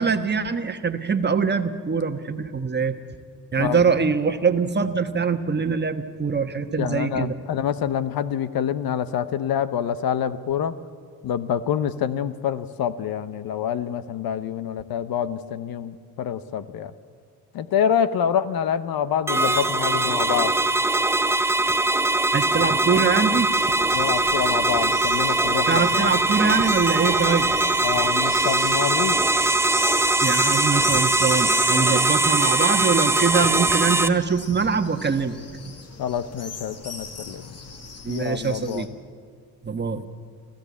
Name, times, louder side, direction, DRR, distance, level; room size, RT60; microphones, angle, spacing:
voice 1, 0.0-3.0 3.5-7.4 22.3-23.5 25.7-27.5 30.2-35.6 38.0-38.9 39.6-40.0, right 5 dB, 25° right, 8 dB, 1.3 m, -23 dB
voice 2, 3.6-3.9 6.8-10.7 11.2-16.9 17.5-20.5 23.9-26.1 27.8-29.2 31.7-32.0 36.0-37.4 38.1-38.9, left 9 dB, 65° left, 14 dB, 0.9 m, -26 dB
sound 1, 19.3-34.1, right 2 dB, 5° right, 0.8 m, -21 dB
sound 2, 23.5-38.9, left 4 dB, 40° left, 2.1 m, -38 dB
25.5 x 14.5 x 8.4 m, 2.1 s
cardioid pair, 85°, 39 cm